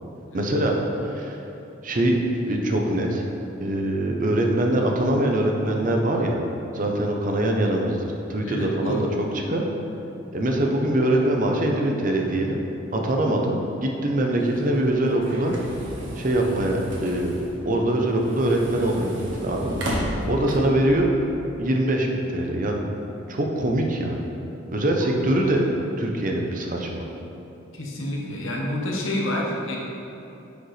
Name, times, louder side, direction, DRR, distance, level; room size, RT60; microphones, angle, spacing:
voice 1, 0.3-0.7 1.0-1.4 1.8-3.2 3.6-6.4 6.7-9.6 10.3-12.6 12.9-15.6 16.2-17.4 17.6-19.8 20.2-21.1 21.6-22.7 23.3-24.2 24.7-25.7 26.0-27.1, right 1 dB, 40° right, 1 dB, 0.7 m, -23 dB
voice 2, 8.4-9.1 25.0-25.1 27.7-29.8, left 1 dB, 75° left, -2 dB, 1.3 m, -28 dB
sound 1, 14.4-20.9, equal, 65° right, 1.4 m, -34 dB
10.0 x 5.1 x 3.3 m, 2.9 s
head